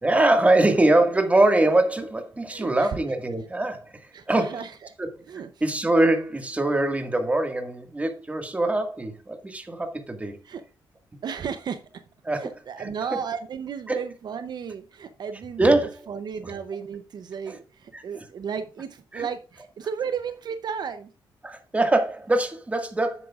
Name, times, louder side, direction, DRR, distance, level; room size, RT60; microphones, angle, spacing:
voice 1, 0.0-4.0 4.3-4.6 5.0-5.1 5.6-10.4 12.2-12.5 12.8-12.9 13.9-14.0 15.6-16.0 17.5-17.6 17.9-18.0 19.1-19.3 21.4-23.3, right 2 dB, 15° right, 1.7 m, -23 dB
voice 2, 2.5-3.0 4.1-4.8 5.3-5.5 10.4-10.6 11.2-12.0 12.4-15.7 16.1-21.1, right 7 dB, 60° right, 0.7 m, -34 dB
9.9 x 8.1 x 2.4 m
cardioid pair, 90°, 8 cm